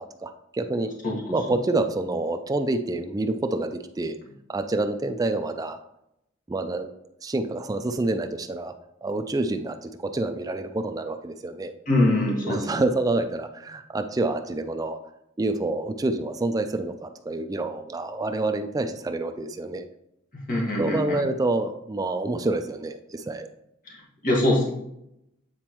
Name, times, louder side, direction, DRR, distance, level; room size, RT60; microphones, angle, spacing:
voice 1, 0.0-0.9 1.3-4.2 4.5-5.8 6.5-6.9 7.2-8.7 9.0-11.7 12.4-15.0 15.4-19.8 20.8-23.5, right 2 dB, 20° right, 7 dB, 0.3 m, -27 dB
voice 2, 11.9-12.7 20.5-21.2 23.9-24.0 24.2-24.7, left 1 dB, 45° left, -3 dB, 1.7 m, -23 dB
8.7 x 4.3 x 3.0 m, 0.81 s
head